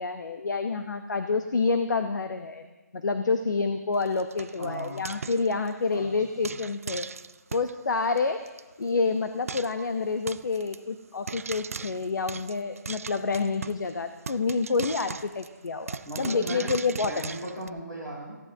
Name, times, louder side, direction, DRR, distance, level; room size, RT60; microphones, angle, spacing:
voice 1, 0.0-2.6 2.9-7.1 7.5-8.4 8.8-17.1, left 4 dB, 80° left, 8 dB, 0.9 m, -28 dB
Frying (food), 3.9-5.9 6.4-7.8 8.2-8.3 8.5-8.6 8.9-9.0 9.5-9.8 10.3-10.8 11.3-13.9 14.3-17.7, right 5 dB, 50° right, 0.3 m, -39 dB
voice 2, 4.6-5.0 5.9-6.5 16.0-16.7 17.1-18.4, right 1 dB, 20° left, -6 dB, 5.9 m, -37 dB
19.0 x 15.0 x 2.8 m, 1.1 s
hypercardioid pair, 180°, 10 cm